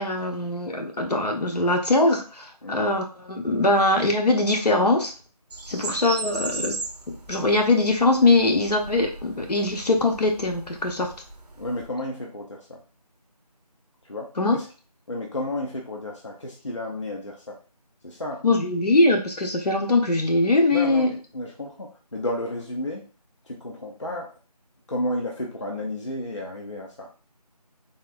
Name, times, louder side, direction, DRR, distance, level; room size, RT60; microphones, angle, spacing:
voice 1, 0.0-5.1 5.7-6.8 7.1-11.1 14.4-14.6 18.4-21.1, left 2 dB, 75° left, 3 dB, 0.8 m, -22 dB
sound 1, 5.5-11.9, right 3 dB, 75° right, 0.5 m, -37 dB
voice 2, 11.6-12.8 14.0-14.7 15.1-17.6 18.0-18.4 20.7-23.1 23.4-24.3 24.9-27.1, left 1 dB, 45° left, -1 dB, 0.5 m, -32 dB
3.5 x 2.1 x 2.4 m, 0.36 s
figure-of-eight pair, 180°, 21 cm